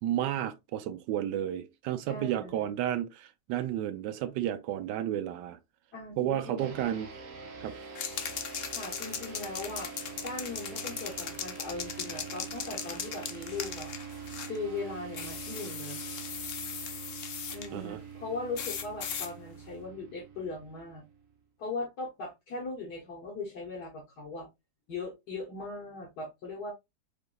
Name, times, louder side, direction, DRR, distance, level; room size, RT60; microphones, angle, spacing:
voice 1, 0.0-5.6 6.2-7.1 7.6-7.7 17.7-18.0, right 11 dB, 90° right, 1.2 m, -32 dB
voice 2, 2.1-2.7 5.9-6.9 8.7-9.9 10.2-13.9 14.5-16.0 17.5-21.1 21.6-24.5 24.9-26.7, left 3 dB, 70° left, 1.8 m, -39 dB
sound 1, 6.6-21.4, right 6 dB, 55° right, 1.1 m, -45 dB
sound 2, 8.0-14.6 15.1-17.7 18.6-19.3, left 7 dB, 90° left, 0.5 m, -38 dB
4.7 x 3.4 x 2.3 m
omnidirectional pair, 1.8 m